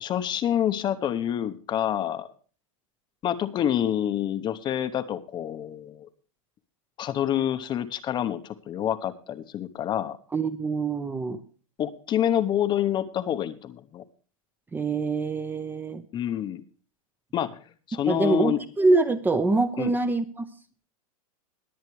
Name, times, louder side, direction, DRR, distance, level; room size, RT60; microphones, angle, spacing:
voice 1, 0.0-2.3 3.2-6.1 7.0-10.2 11.8-14.0 16.1-16.6 17.3-17.6 17.9-18.6 19.8-19.9, left 10 dB, 25° left, 11 dB, 0.9 m, -27 dB
voice 2, 10.3-11.4 14.7-16.0 18.1-20.4, right 3 dB, 10° right, 11 dB, 0.8 m, -24 dB
21.5 x 8.1 x 3.2 m, 0.40 s
supercardioid pair, 145°, 18 cm